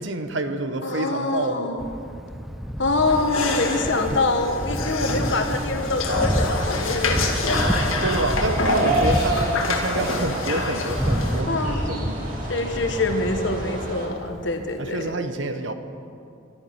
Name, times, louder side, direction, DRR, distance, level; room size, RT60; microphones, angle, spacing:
voice 1, 0.0-1.8 7.7-12.3 14.8-15.7, right 2 dB, 60° right, 8 dB, 1.0 m, -28 dB
voice 2, 0.8-1.9 2.8-7.3 11.5-11.9 12.5-15.1, left 2 dB, 60° left, 5 dB, 1.3 m, -25 dB
Thunder, 1.8-15.1, equal, ahead, 0.5 m, -29 dB
sound 1, 3.1-11.4, left 3 dB, 75° left, 1.8 m, -27 dB
sound 2, 6.6-14.1, right 1 dB, 40° right, 2.7 m, -31 dB
12.5 x 10.5 x 10.0 m, 2.5 s
head